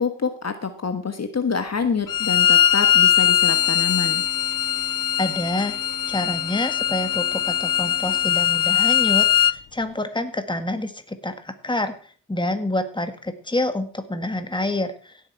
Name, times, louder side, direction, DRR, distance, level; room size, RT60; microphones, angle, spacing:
voice 1, 0.0-4.2, left 5 dB, 45° left, 8 dB, 1.4 m, -26 dB
Bowed string instrument, 2.1-9.5, left 11 dB, 60° left, 0.7 m, -20 dB
Wind instrument woodwind instrument, 3.4-8.3, right 1 dB, 25° right, 3.8 m, -45 dB
voice 2, 5.2-5.8 6.1-15.2, left 1 dB, 15° left, 8 dB, 1.8 m, -27 dB
16.5 x 8.1 x 4.7 m, 0.40 s
cardioid pair, 80°, 37 cm